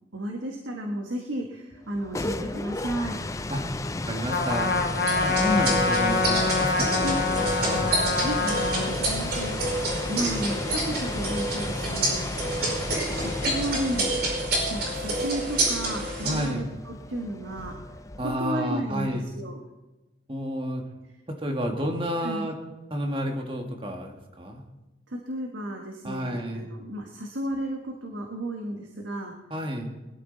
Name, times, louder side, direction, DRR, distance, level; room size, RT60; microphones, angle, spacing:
voice 1, 0.1-3.2 6.9-7.2 8.1-12.3 13.1-14.1 14.7-17.8 18.2-19.6 22.2-22.5 25.1-29.3, right 1 dB, 85° right, 1 dB, 1.5 m, -33 dB
sound 1, 1.9-18.6, left 2 dB, 15° left, 0.4 m, -34 dB
voice 2, 4.1-4.7 5.2-6.9 7.4-7.9 16.2-16.7 18.2-19.2 20.3-20.8 21.3-22.6 22.9-24.6 26.0-26.7 29.5-29.9, equal, 25° right, 2 dB, 1.8 m, -30 dB
Trumpet, 4.3-9.0, left 3 dB, 50° left, 1.3 m, -25 dB
sound 2, 5.1-16.5, right 1 dB, 55° right, 4.8 m, -28 dB
21.0 x 12.5 x 4.0 m, 1.1 s
head